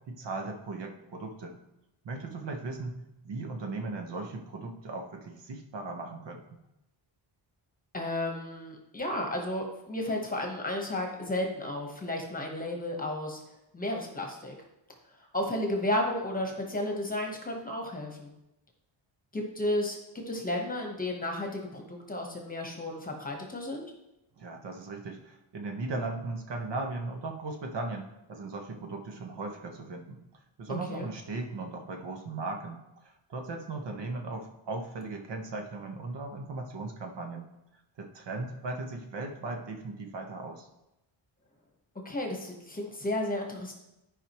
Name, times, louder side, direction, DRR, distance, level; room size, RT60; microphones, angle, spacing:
voice 1, 0.1-1.5 2.0-3.0 3.2-6.4 24.4-30.2 30.6-37.5 38.0-40.7, right 3 dB, 60° right, 3 dB, 1.2 m, -37 dB
voice 2, 7.9-13.4 13.7-14.5 15.3-18.3 19.3-20.0 20.3-23.9 30.7-31.1 42.0-43.7, left 1 dB, 15° left, 1 dB, 1.1 m, -33 dB
13.5 x 5.1 x 3.0 m, 0.91 s
wide cardioid pair, 180°, 48 cm